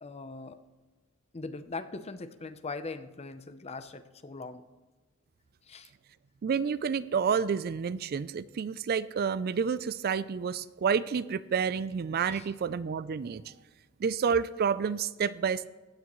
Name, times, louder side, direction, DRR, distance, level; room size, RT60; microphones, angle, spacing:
voice 1, 0.0-0.6 1.3-4.6 5.7-5.9 12.3-12.5, left 3 dB, 30° left, 11 dB, 0.7 m, -40 dB
voice 2, 6.4-13.4 14.0-15.7, right 6 dB, 50° right, 16 dB, 0.4 m, -29 dB
15.5 x 9.6 x 3.1 m, 1.2 s
head